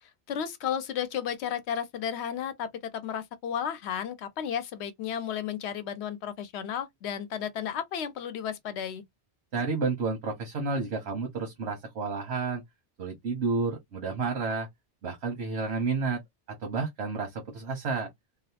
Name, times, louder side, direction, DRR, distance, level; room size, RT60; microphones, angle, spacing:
voice 1, 0.0-9.0, left 8 dB, 90° left, 0.9 m, -33 dB
voice 2, 9.5-12.6 13.0-14.7 15.0-16.2 16.6-18.1, right 4 dB, 85° right, 1.1 m, -30 dB
2.7 x 2.0 x 2.7 m
omnidirectional pair, 1.1 m